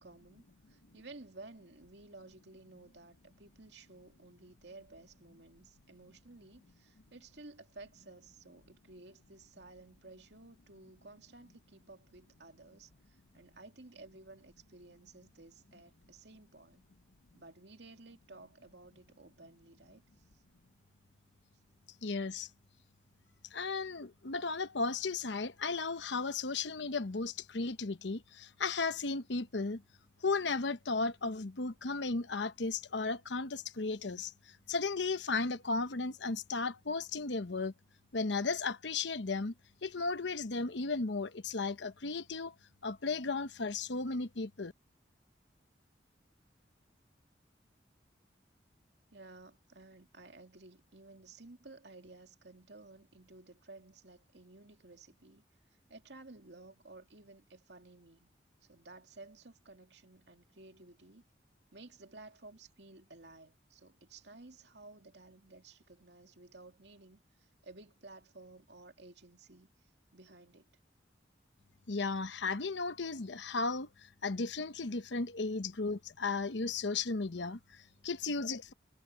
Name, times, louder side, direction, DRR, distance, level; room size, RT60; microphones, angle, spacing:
voice 1, 0.0-16.9 17.3-20.0 20.3-20.4 49.1-55.4 55.9-58.3 58.6-61.2 61.7-70.7, right 2 dB, 75° right, 2.4 m, -55 dB
voice 2, 22.0-22.5 23.5-29.8 30.2-37.7 38.1-39.5 39.8-42.5 42.8-44.7 71.9-78.7, left 3 dB, 85° left, 1.0 m, -35 dB
head